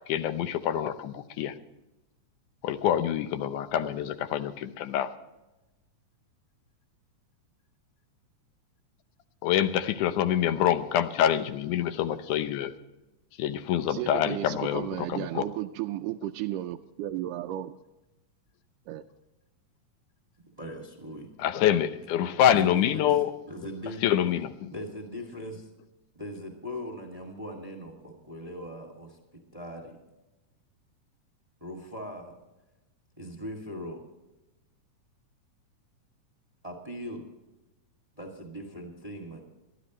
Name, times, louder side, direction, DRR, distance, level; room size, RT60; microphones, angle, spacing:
voice 1, 0.1-1.5 2.6-5.1 9.4-12.7 13.4-15.4 21.4-23.3 24.0-24.7, left 10 dB, 80° left, 11 dB, 2.3 m, -26 dB
voice 2, 13.9-17.7 18.9-19.0, right 14 dB, 90° right, 4 dB, 2.2 m, -34 dB
voice 3, 20.5-21.3 22.5-23.2 23.5-24.0 24.7-25.7 26.1-30.0 31.6-32.3 33.2-34.0 36.6-37.2 38.1-39.4, equal, 15° right, 4 dB, 1.7 m, -40 dB
22.0 x 13.0 x 3.1 m, 1.0 s
omnidirectional pair, 3.6 m